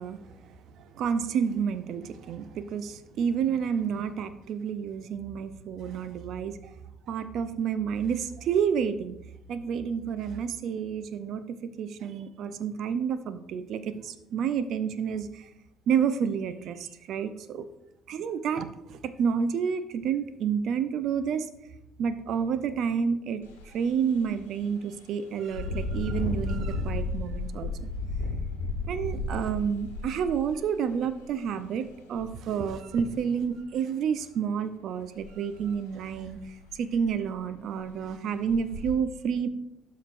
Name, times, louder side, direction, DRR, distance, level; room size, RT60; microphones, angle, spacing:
voice 1, 0.0-6.7 7.1-9.2 9.5-15.5 15.9-17.6 18.1-21.5 22.0-27.9 28.9-39.5, right 7 dB, 60° right, 11 dB, 0.6 m, -30 dB
Engine, 23.4-23.6 24.1-24.3 25.5-31.3 32.1-32.3 32.7-33.4 35.2-35.3 35.7-35.8 36.3-36.4 36.7-37.2 37.8-37.9 38.5-38.9, left 2 dB, 90° left, 1.1 m, -33 dB
12.5 x 5.1 x 2.6 m, 0.85 s
hypercardioid pair, 60°, 0 cm